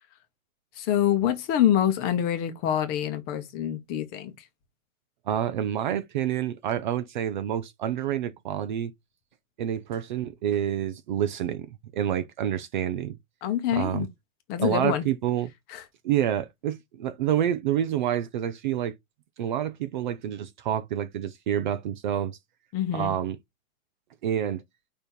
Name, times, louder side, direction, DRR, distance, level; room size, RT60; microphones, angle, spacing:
voice 1, 0.7-4.5 13.4-14.1 14.5-15.0 15.7-15.8 22.7-23.1, left 10 dB, 20° left, 0.9 m, -26 dB
voice 2, 5.3-8.9 9.6-13.2 13.8-14.1 14.6-15.5 16.0-18.9 19.4-22.4 22.9-23.4 24.2-24.6, right 10 dB, 35° right, 0.6 m, -28 dB
5.3 x 4.3 x 4.5 m
hypercardioid pair, 150°, 43 cm